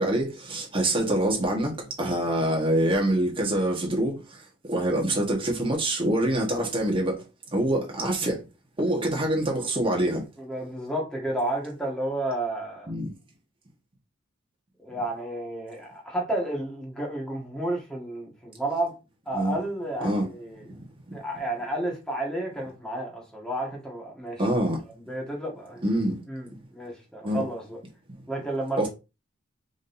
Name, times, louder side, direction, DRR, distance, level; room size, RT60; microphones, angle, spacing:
voice 1, 0.0-4.4 4.7-7.2 7.5-8.4 8.8-10.2 12.9-13.1 19.3-19.5 20.0-20.2 24.4-24.8 25.8-26.2 27.2-27.4 28.8-28.9, right 1 dB, 25° right, 1.4 m, -25 dB
voice 2, 10.4-12.9 14.8-18.9 19.2-20.6 21.1-24.4 24.9-27.8 28.3-28.9, right 1 dB, 5° left, 1.7 m, -31 dB
5.1 x 3.9 x 2.7 m
head